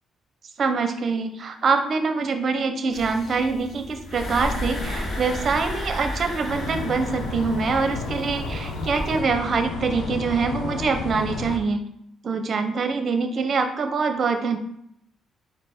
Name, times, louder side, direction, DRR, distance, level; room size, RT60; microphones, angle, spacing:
voice 1, 0.6-11.8 12.2-14.6, right 4 dB, 50° right, 7 dB, 0.6 m, -24 dB
sound 1, 2.9-9.2, left 1 dB, 55° left, 1.0 m, -33 dB
sound 2, 6.5-11.6, left 3 dB, 80° left, 0.7 m, -32 dB
4.2 x 2.6 x 4.8 m, 0.73 s
cardioid pair, 90°, 0 cm